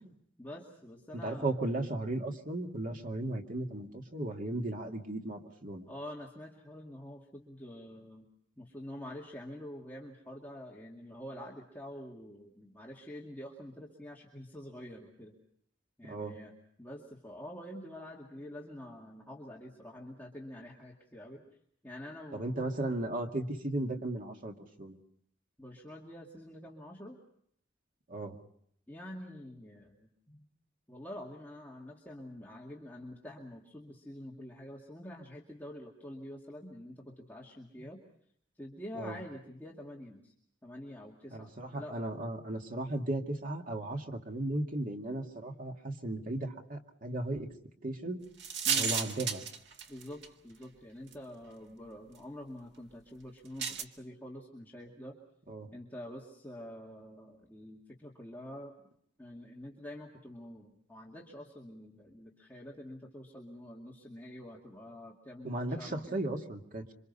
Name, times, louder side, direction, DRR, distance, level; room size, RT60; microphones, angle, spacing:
voice 1, 0.4-1.6 5.9-8.3 8.6-15.4 16.0-16.5 16.8-21.4 21.8-22.7 25.6-27.2 28.9-30.5 30.9-38.0 38.6-40.3 40.6-42.0 48.6-48.9 49.9-55.2 55.7-58.7 59.2-66.2, left 1 dB, 10° left, -3 dB, 2.3 m, -47 dB
voice 2, 1.2-5.8 16.1-16.3 22.3-25.0 28.1-28.4 39.0-39.2 41.3-47.5 47.8-48.2 48.7-49.4 55.5-55.7 65.4-66.9, right 2 dB, 45° right, 3 dB, 2.3 m, -36 dB
sound 1, 48.4-50.3 51.1-51.2 53.6-53.8, right 6 dB, 65° right, 1.9 m, -32 dB
27.5 x 25.0 x 5.5 m, 0.68 s
head